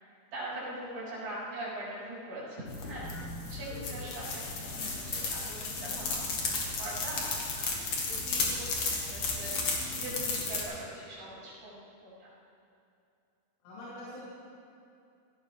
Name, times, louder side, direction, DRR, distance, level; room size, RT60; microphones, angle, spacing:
voice 1, 0.3-6.2 6.8-12.3, right 1 dB, 70° right, -9 dB, 6.2 m, -42 dB
sound 1, 2.7-10.6, left 3 dB, 50° left, 2.5 m, -34 dB
voice 2, 13.6-14.2, left 1 dB, 85° left, -11 dB, 5.5 m, -44 dB
16.5 x 16.0 x 3.5 m, 2.5 s
omnidirectional pair, 4.7 m